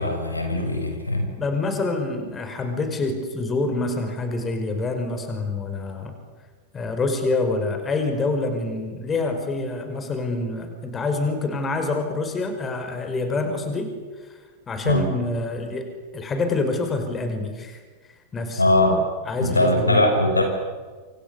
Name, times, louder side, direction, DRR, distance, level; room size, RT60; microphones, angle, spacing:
voice 1, 0.0-1.3 14.8-15.1 18.6-19.0 19.4-20.4, left 1 dB, 80° left, 4 dB, 6.0 m, -20 dB
voice 2, 1.4-6.1 6.7-13.9 14.7-17.8 18.3-18.6 19.3-20.0, left 3 dB, 20° left, 6 dB, 5.5 m, -26 dB
28.0 x 28.0 x 7.2 m, 1.4 s
figure-of-eight pair, 90°, 0 cm